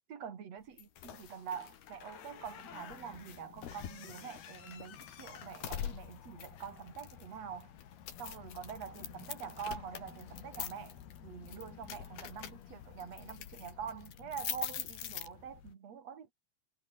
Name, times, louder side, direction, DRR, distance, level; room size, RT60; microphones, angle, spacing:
voice 1, 0.1-7.7 8.2-16.3, right 7 dB, 50° right, 3.2 m, -45 dB
sound 1, 0.8-15.7, left 10 dB, 90° left, 4.4 m, -45 dB
omnidirectional pair, 4.3 m